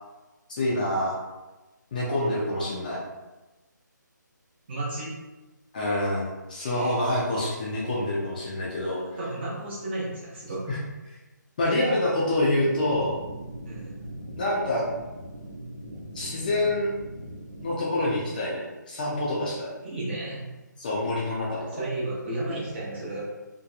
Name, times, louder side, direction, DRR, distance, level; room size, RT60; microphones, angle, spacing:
voice 1, 0.5-1.2 1.9-3.0 5.7-9.0 10.7-10.8 11.1-11.2 11.6-13.2 14.3-14.9 16.1-16.9 17.6-19.7 20.8-21.8, left 1 dB, 25° left, -5 dB, 0.4 m, -27 dB
voice 2, 4.7-5.1 6.6-7.0 9.0-10.7 11.6-11.7 13.7-14.1 19.8-20.5 21.6-23.3, right 1 dB, 35° right, -6 dB, 0.8 m, -33 dB
sound 1, 12.3-17.8, right 1 dB, 90° right, 0.6 m, -40 dB
2.8 x 2.1 x 2.4 m, 1.1 s
figure-of-eight pair, 155°, 10 cm